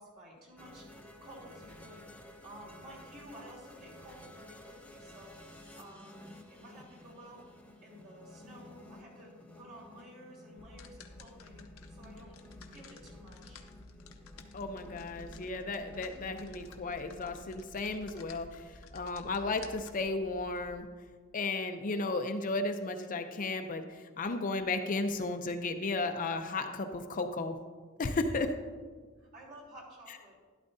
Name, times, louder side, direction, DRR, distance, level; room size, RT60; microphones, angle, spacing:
voice 1, 0.0-2.1 2.4-7.5 7.8-12.3 12.7-13.7 28.2-28.6 28.9-30.4, equal, 45° right, -4 dB, 3.5 m, -53 dB
sound 1, 0.6-17.7, left 1 dB, 5° left, 0.8 m, -53 dB
sound 2, 10.6-20.8, left 3 dB, 75° left, 0.8 m, -52 dB
voice 2, 14.5-20.9 21.3-27.6 28.0-28.5, left 3 dB, 40° left, 7 dB, 0.6 m, -34 dB
12.0 x 11.5 x 2.7 m, 1.5 s
head